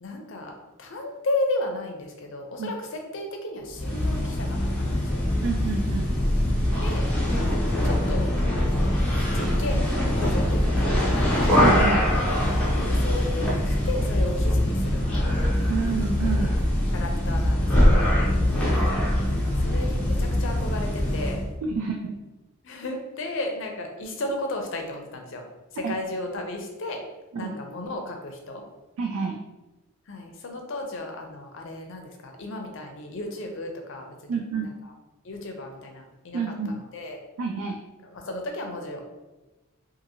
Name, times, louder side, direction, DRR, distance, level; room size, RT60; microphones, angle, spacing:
voice 1, 0.0-0.5 0.8-5.2 6.8-7.5 7.8-8.3 9.3-10.8 11.1-11.5 12.8-15.4 16.9-18.2 19.6-21.4 22.6-25.4 25.7-27.0 27.4-28.6 30.1-34.4 35.2-36.4 36.9-37.2 38.1-39.0, left 2 dB, 60° left, 3 dB, 0.5 m, -34 dB
sound 1, 3.7-21.5, left 1 dB, 5° left, 0.6 m, -23 dB
voice 2, 5.4-6.1 11.6-12.1 15.7-16.5 21.6-22.2 25.8-25.9 27.3-27.5 29.0-29.4 34.3-34.7 36.3-36.8 37.4-37.8, right 5 dB, 85° right, 1 dB, 0.3 m, -29 dB
2.7 x 2.5 x 2.8 m, 1.1 s
head